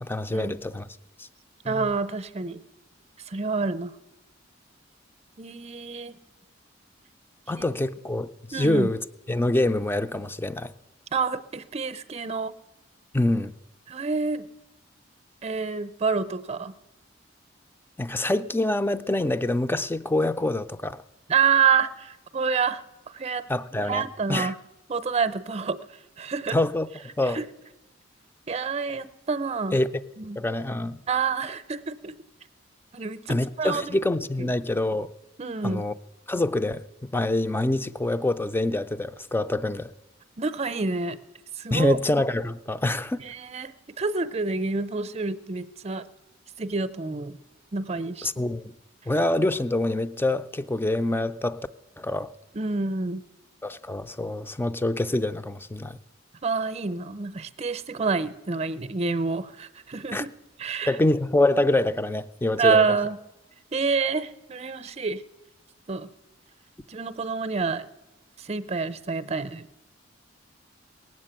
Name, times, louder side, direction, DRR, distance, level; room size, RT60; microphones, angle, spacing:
voice 1, 0.0-0.8 1.2-1.3 1.7-1.9 7.5-9.0 9.3-10.7 13.1-13.5 18.0-21.0 23.5-24.5 26.5-27.4 29.7-29.9 30.4-31.0 33.3-35.1 35.6-35.9 36.3-36.8 37.1-39.9 41.7-43.2 48.2-48.6 49.1-51.6 52.0-52.3 53.6-56.0 60.1-60.3 60.9-62.8, left 1 dB, 10° left, 0.4 m, -25 dB
voice 2, 1.6-2.6 3.3-3.9 5.4-6.2 7.5-7.7 8.5-8.9 11.1-12.5 13.9-14.5 15.4-16.7 21.3-23.4 23.8-24.6 24.9-25.8 26.2-26.6 27.3-27.4 28.5-29.8 30.2-30.4 31.1-32.1 32.9-33.8 34.4-34.5 35.4-35.8 40.4-41.2 41.6-42.0 43.2-46.1 46.6-47.4 47.7-48.3 52.5-53.2 56.4-60.3 60.6-60.9 62.6-63.2 63.7-65.2 65.9-66.1 66.9-67.9 68.4-69.7, right 5 dB, 35° right, 0.7 m, -27 dB
18.5 x 7.5 x 8.9 m
head